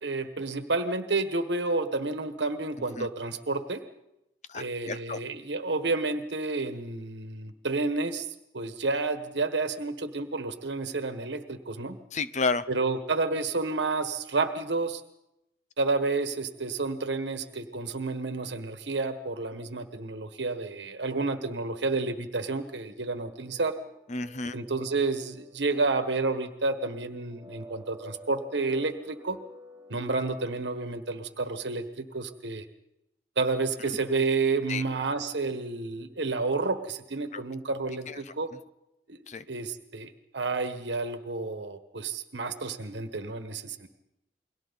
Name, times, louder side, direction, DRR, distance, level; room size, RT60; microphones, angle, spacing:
voice 1, 0.0-3.8 4.5-8.3 8.5-12.0 12.7-15.0 15.8-23.7 24.5-29.4 29.9-32.6 33.4-38.5 39.1-43.9, right 3 dB, 75° right, 8 dB, 1.3 m, -30 dB
voice 2, 4.5-5.2 12.1-12.6 24.1-24.5 34.7-34.8 37.3-37.4 38.1-38.3 39.3-39.4, left 4 dB, 40° left, 13 dB, 0.8 m, -31 dB
sound 1, 23.3-30.2, right 1 dB, 20° right, 4.9 m, -52 dB
29.0 x 22.5 x 4.1 m, 0.88 s
head